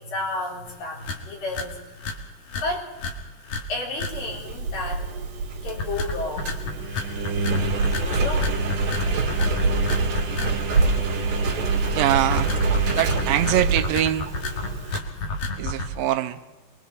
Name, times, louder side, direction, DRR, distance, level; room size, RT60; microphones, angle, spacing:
voice 1, 0.0-1.9 2.5-2.9 3.7-5.1 5.6-6.9 7.3-7.5 7.9-8.6, left 2 dB, 70° left, 6.2 m, -32 dB
sound 1, 0.7-0.8 1.0-1.2 1.5-1.7 2.0-2.1 2.5-2.7 3.0-3.1 3.5-3.6 3.9-4.1 5.7-10.8 12.2-15.9, left 3 dB, 55° left, 3.2 m, -31 dB
Engine, 4.1-15.0, right 3 dB, 60° right, 3.6 m, -25 dB
voice 2, 11.9-12.5 13.0-14.3 15.6-16.4, right 13 dB, 85° right, 2.6 m, -23 dB
28.0 x 22.0 x 4.2 m
omnidirectional pair, 4.1 m